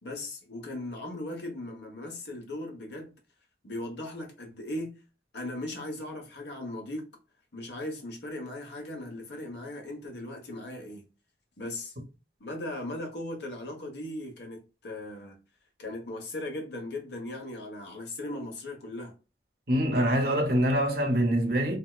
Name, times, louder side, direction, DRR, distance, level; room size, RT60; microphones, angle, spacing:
voice 1, 0.0-3.1 3.6-4.9 5.3-7.1 7.5-11.0 11.6-11.9 12.4-15.4 15.8-19.1, left 1 dB, 70° left, 1.1 m, -38 dB
voice 2, 19.7-21.8, equal, 55° right, 0.9 m, -24 dB
3.5 x 2.7 x 2.3 m
head